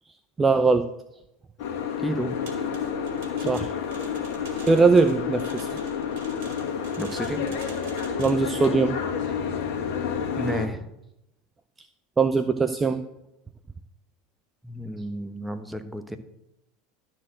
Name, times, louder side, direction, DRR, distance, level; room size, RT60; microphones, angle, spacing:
voice 1, 0.4-0.9 3.4-3.7 4.6-5.7 8.2-9.0 12.2-13.0, right 4 dB, 20° right, 9 dB, 0.6 m, -21 dB
Boat Water vehicle, 1.6-10.7, left 7 dB, 65° left, 1.6 m, -30 dB
voice 2, 2.0-2.4 7.0-7.4 10.3-10.9 14.6-16.2, right 1 dB, 5° right, 8 dB, 1.1 m, -31 dB
sound 1, 2.5-8.5, right 5 dB, 75° right, 2.2 m, -47 dB
12.0 x 4.6 x 7.6 m, 0.85 s
hypercardioid pair, 90°, 0 cm